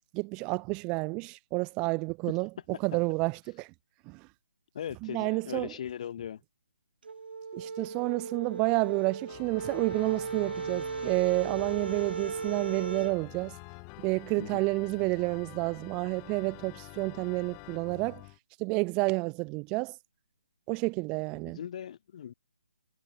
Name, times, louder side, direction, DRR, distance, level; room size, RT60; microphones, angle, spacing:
voice 1, 0.1-2.5 2.8-3.7 4.1-4.3 5.0-5.7 7.5-13.6 14.0-18.2 18.6-20.0 20.7-21.6, right 28 dB, 15° right, 0.4 m, -30 dB
voice 2, 4.7-6.4 14.4-14.7 21.5-22.3, left 9 dB, 40° left, 2.7 m, -39 dB
sound 1, 7.0-13.2, right 5 dB, 65° right, 0.7 m, -36 dB
Organ, 9.3-18.4, left 40 dB or more, 20° left, 2.0 m, -48 dB
hypercardioid pair, 160°, 6 cm